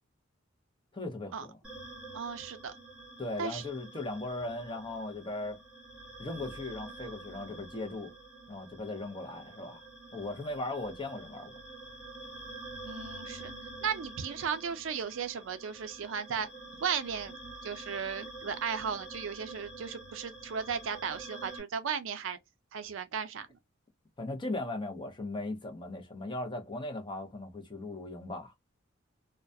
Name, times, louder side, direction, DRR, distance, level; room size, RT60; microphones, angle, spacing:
voice 1, 0.9-1.6 3.2-5.6 6.2-8.1 8.5-9.8 10.1-11.5 24.2-28.5, left 2 dB, 25° left, 0.6 m, -38 dB
sound 1, 1.6-21.6, right 2 dB, 5° right, 1.1 m, -47 dB
voice 2, 2.1-2.7 3.4-3.6 12.9-13.5 13.8-16.5 16.8-17.3 17.6-22.4 22.7-23.5, right 6 dB, 75° right, 0.4 m, -35 dB
2.3 x 2.1 x 2.6 m
head